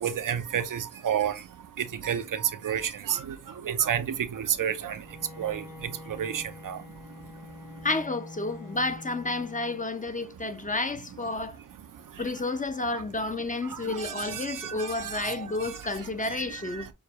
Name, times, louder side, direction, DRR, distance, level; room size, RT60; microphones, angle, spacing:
voice 1, 0.0-1.3 2.0-3.4 3.6-5.0 5.4-5.6 6.2-6.8 13.9-15.5 16.2-16.8, right 9 dB, 85° right, 0.7 m, -30 dB
Bowed string instrument, 4.9-10.2, left 3 dB, 85° left, 2.2 m, -46 dB
voice 2, 7.8-11.6 12.2-16.9, left 2 dB, 25° left, 0.7 m, -31 dB
6.4 x 2.3 x 2.8 m
cardioid pair, 65°, 31 cm